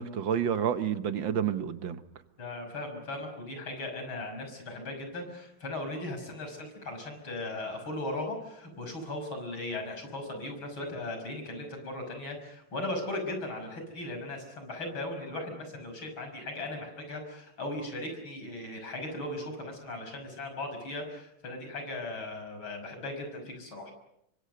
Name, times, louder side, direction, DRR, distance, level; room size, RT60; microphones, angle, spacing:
voice 1, 0.0-2.0, right 8 dB, 70° right, 1.9 m, -29 dB
voice 2, 2.4-23.9, left 2 dB, 85° left, 6.6 m, -38 dB
26.5 x 24.0 x 6.7 m
omnidirectional pair, 2.2 m